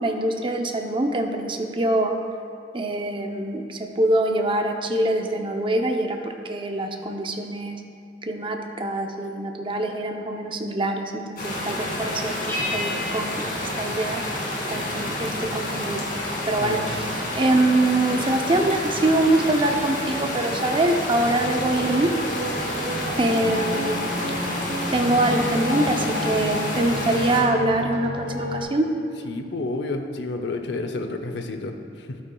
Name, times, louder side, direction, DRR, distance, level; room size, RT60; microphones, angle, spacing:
voice 1, 0.0-2.1 2.7-7.8 8.2-14.2 14.7-16.1 16.4-17.1 17.4-22.1 23.2-24.1 24.9-28.9, right 1 dB, 30° right, 3 dB, 0.6 m, -24 dB
sound 1, 11.4-27.4, left 1 dB, 55° left, 2.0 m, -29 dB
sound 2, 12.5-14.7, left 2 dB, 15° left, 1.2 m, -34 dB
voice 2, 16.6-17.2 29.2-32.2, left 2 dB, 75° left, 6 dB, 0.7 m, -30 dB
sound 3, 21.2-28.6, equal, 70° right, 1.1 m, -30 dB
12.0 x 8.5 x 2.3 m, 2.4 s
head